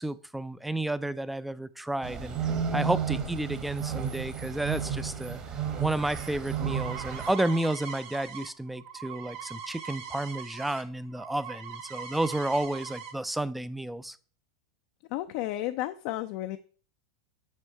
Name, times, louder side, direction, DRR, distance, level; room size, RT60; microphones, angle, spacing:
voice 1, 0.0-2.4 2.7-5.4 5.8-14.2, right 1 dB, 5° right, 0.4 m, -31 dB
sound 1, 2.0-7.3, right 7 dB, 35° right, 1.6 m, -32 dB
sound 2, 6.3-10.8 11.1-13.1, right 7 dB, 60° right, 1.0 m, -41 dB
voice 2, 15.1-16.6, left 15 dB, 55° left, 0.4 m, -32 dB
6.4 x 5.2 x 4.5 m
hypercardioid pair, 100°, 2 cm